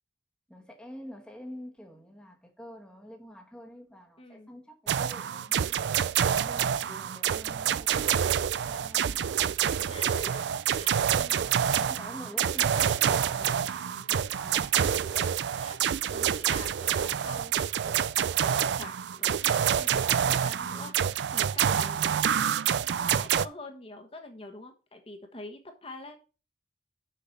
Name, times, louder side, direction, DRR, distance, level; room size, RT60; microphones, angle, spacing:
voice 1, 0.5-5.8 6.3-10.0 11.4-14.9, equal, 5° left, 1.2 m, -47 dB
voice 2, 4.2-4.5 9.9-10.4 10.7-11.5 15.0-15.8 16.1-22.6 22.9-26.3, left 2 dB, 30° left, 1.2 m, -45 dB
sound 1, 4.9-23.5, right 9 dB, 70° right, 0.4 m, -27 dB
6.8 x 5.9 x 5.7 m
head